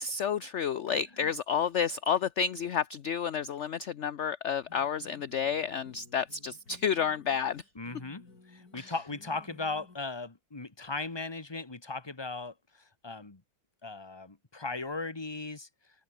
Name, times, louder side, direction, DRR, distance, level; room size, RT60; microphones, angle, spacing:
voice 1, 0.0-7.6 8.7-8.9, left 7 dB, 55° left, 1.0 m, -30 dB
voice 2, 0.9-1.3 7.7-13.4 13.8-15.7, left 3 dB, 15° left, 1.7 m, -38 dB
sound 1, 4.7-10.0, left 3 dB, 75° left, 4.5 m, -56 dB
open air
omnidirectional pair, 1.6 m